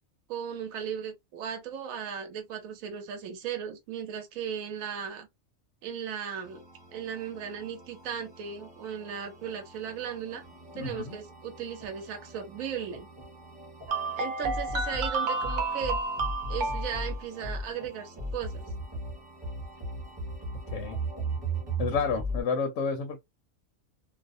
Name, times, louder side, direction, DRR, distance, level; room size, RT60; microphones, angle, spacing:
voice 1, 0.3-5.3 5.8-6.6 6.9-10.4 10.7-13.1 14.2-16.0 16.5-18.7, right 8 dB, 80° right, 1.0 m, -36 dB
sound 1, 6.4-22.4, right 1 dB, 20° right, 0.8 m, -38 dB
voice 2, 10.8-11.2 20.7-21.0 21.8-23.2, left 5 dB, 70° left, 0.8 m, -30 dB
sound 2, 13.9-17.1, right 3 dB, 55° right, 0.5 m, -31 dB
2.5 x 2.0 x 2.5 m
omnidirectional pair, 1.4 m